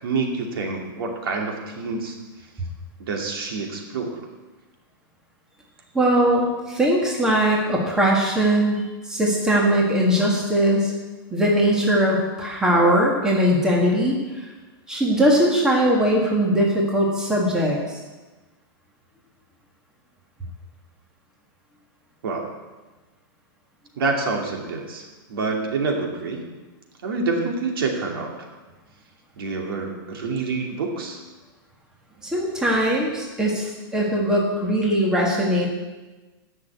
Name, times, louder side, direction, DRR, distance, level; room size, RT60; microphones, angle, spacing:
voice 1, 0.0-2.2 3.0-4.3 22.2-22.6 24.0-26.4 27.0-28.5 29.4-31.2, right 3 dB, 70° right, 1 dB, 2.6 m, -27 dB
voice 2, 5.9-10.9 11.3-14.2 14.9-18.0 32.2-35.7, right 1 dB, 5° right, -2 dB, 1.6 m, -20 dB
10.5 x 6.5 x 8.2 m, 1.2 s
supercardioid pair, 165°, 12 cm